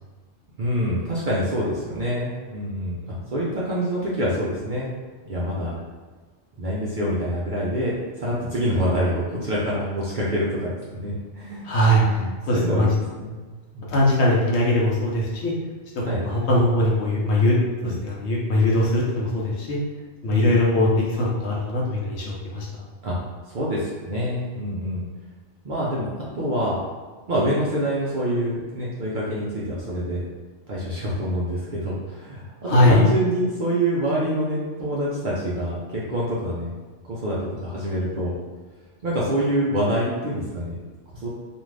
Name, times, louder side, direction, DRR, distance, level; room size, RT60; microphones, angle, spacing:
voice 1, 0.6-4.9 5.3-5.7 6.6-10.7 11.0-12.9 13.2-13.5 13.7-13.9 16.0-16.2 17.8-18.0 20.3-20.5 23.0-23.2 23.5-25.1 25.6-26.1 26.3-26.8 27.3-30.2 30.7-36.7 37.0-38.3 39.0-40.7 41.1-41.3, equal, 55° right, -7 dB, 0.5 m, -26 dB
voice 2, 11.6-12.2 12.4-12.9 13.9-15.5 15.9-17.6 17.8-19.8 20.2-22.8 32.7-33.0, left 1 dB, 65° left, -4 dB, 0.9 m, -21 dB
2.5 x 2.4 x 3.2 m, 1.4 s
omnidirectional pair, 1.3 m